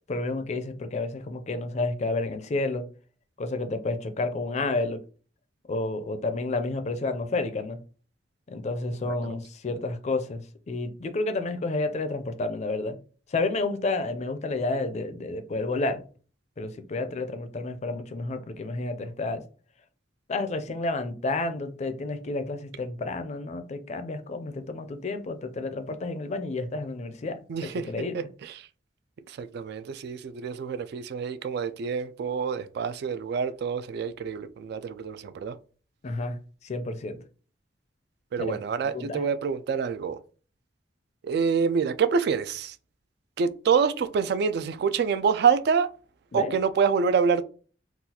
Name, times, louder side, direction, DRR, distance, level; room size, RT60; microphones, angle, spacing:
voice 1, 0.1-2.8 3.4-5.0 5.7-7.8 8.5-13.0 13.3-16.0 16.6-19.4 20.3-27.4 27.7-28.2 36.0-37.2 38.5-38.6 38.9-39.2 46.3-46.5, left 2 dB, 40° left, 0.4 m, -30 dB
voice 2, 27.5-27.9 28.1-28.7 29.3-35.6 38.3-40.2 41.2-42.8 43.4-45.9 46.3-47.4, right 6 dB, 60° right, 0.3 m, -26 dB
3.9 x 2.3 x 2.8 m
head